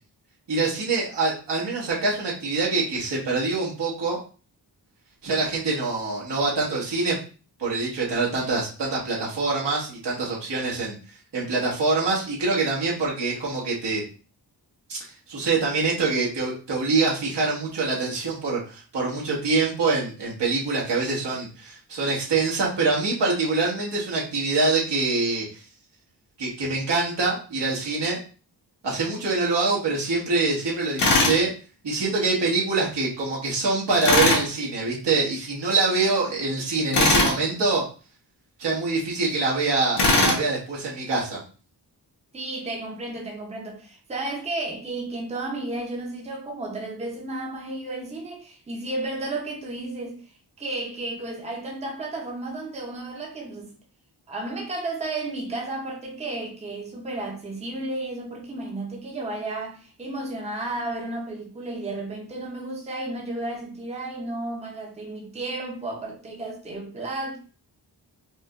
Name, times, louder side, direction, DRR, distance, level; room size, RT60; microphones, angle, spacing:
voice 1, 0.5-4.2 5.2-7.2 7.6-10.9 11.3-14.0 14.9-15.0 15.3-25.6 26.4-28.2 28.8-31.5 31.8-37.8 38.6-41.4, right 3 dB, 85° right, 1.5 m, -25 dB
Tools, 31.0-31.4 34.0-34.4 36.9-37.4 40.0-40.4, left 2 dB, 75° left, 1.2 m, -19 dB
voice 2, 42.3-50.2 50.6-53.7 54.3-67.4, right 2 dB, 15° right, 0.7 m, -33 dB
4.9 x 2.3 x 2.4 m
wide cardioid pair, 150°, 41 cm